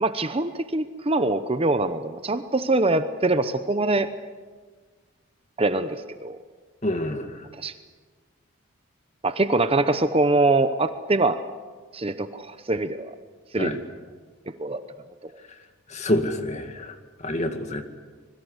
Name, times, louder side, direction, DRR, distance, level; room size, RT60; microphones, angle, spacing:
voice 1, 0.0-4.1 5.6-6.4 7.6-7.7 9.2-11.4 11.9-13.2 13.5-13.8 14.6-14.8, right 2 dB, 25° right, 10 dB, 0.9 m, -23 dB
voice 2, 6.8-7.3 13.6-13.8 15.9-16.9 17.2-17.8, left 1 dB, 35° left, 6 dB, 2.2 m, -26 dB
25.5 x 22.0 x 8.1 m, 1.4 s
head